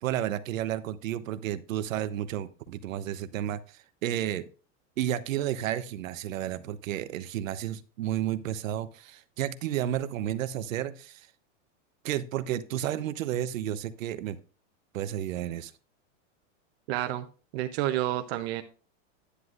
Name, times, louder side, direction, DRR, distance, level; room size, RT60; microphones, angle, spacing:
voice 1, 0.0-4.5 5.0-11.3 12.0-14.4 14.9-15.7, right 11 dB, 85° right, 13 dB, 0.9 m, -32 dB
voice 2, 16.9-17.3 17.5-18.6, right 14 dB, 55° right, 8 dB, 0.7 m, -29 dB
10.0 x 9.3 x 2.5 m, 0.37 s
supercardioid pair, 145°, 38 cm